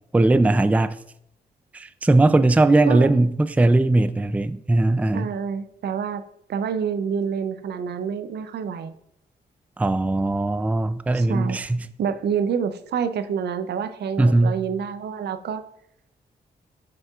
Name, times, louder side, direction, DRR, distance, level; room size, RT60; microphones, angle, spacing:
voice 1, 0.1-0.9 1.7-5.3 9.8-11.9 14.2-14.6, right 2 dB, 10° right, 0.3 m, -19 dB
voice 2, 5.1-8.9 11.1-11.6 12.0-15.6, right 7 dB, 70° right, 0.5 m, -27 dB
7.8 x 5.3 x 2.4 m
supercardioid pair, 45°, 18 cm